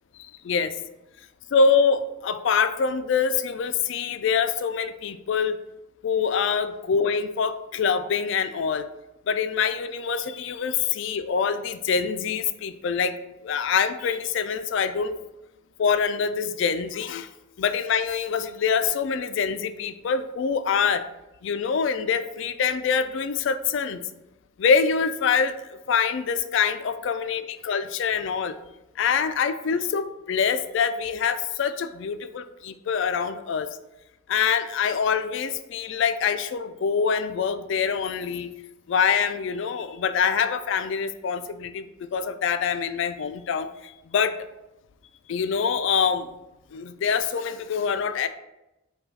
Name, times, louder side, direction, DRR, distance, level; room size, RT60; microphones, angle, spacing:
voice 1, 1.5-5.6 6.0-8.8 9.3-13.2 13.4-15.2 15.8-17.3 17.6-21.0 21.4-24.0 24.6-28.5 29.0-33.7 34.3-38.5 38.9-44.3 45.3-46.3 46.7-48.3, left 6 dB, 60° left, 10 dB, 0.3 m, -25 dB
5.5 x 2.3 x 4.0 m, 0.93 s
head